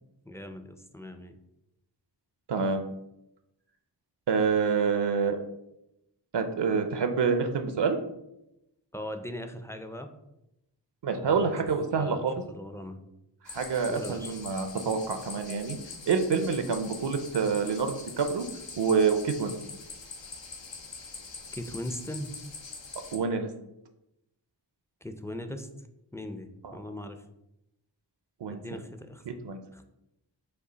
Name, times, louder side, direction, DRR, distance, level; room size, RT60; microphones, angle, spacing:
voice 1, 0.3-1.4 8.9-10.1 11.1-11.5 12.0-13.0 13.9-14.3 21.5-22.3 25.0-25.7 26.1-27.2 28.5-29.4 29.7-29.8, left 1 dB, 5° left, 7 dB, 0.4 m, -39 dB
voice 2, 2.5-2.8 4.3-5.5 6.3-8.0 11.0-12.4 13.4-15.8 16.1-18.5 18.8-19.5 23.1-23.5 26.6-26.8 28.4-28.6 29.3-29.6, right 5 dB, 70° right, 7 dB, 0.5 m, -27 dB
sound 1, 13.5-23.2, left 4 dB, 80° left, 0.7 m, -43 dB
5.3 x 2.4 x 3.9 m, 0.87 s
wide cardioid pair, 55°, 44 cm